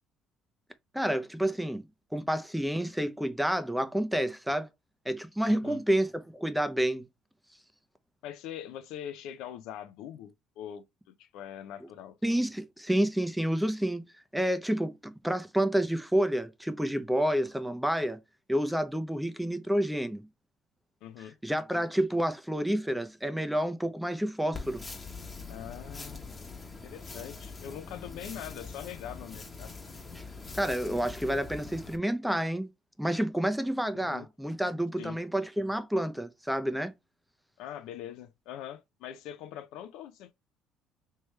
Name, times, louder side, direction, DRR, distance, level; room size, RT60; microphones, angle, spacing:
voice 1, 0.9-4.7 5.1-7.1 12.2-14.1 14.3-18.2 18.5-20.3 21.4-24.8 30.6-32.7 33.0-36.9, right 1 dB, 5° right, 0.6 m, -29 dB
voice 2, 5.5-5.8 8.2-12.2 21.0-21.3 25.5-26.3 26.8-29.7 33.9-34.3 35.0-35.2 37.6-40.3, left 10 dB, 80° left, 0.5 m, -43 dB
sound 1, 24.5-32.0, left 4 dB, 25° left, 1.1 m, -43 dB
3.3 x 3.1 x 3.2 m
supercardioid pair, 80°, 0 cm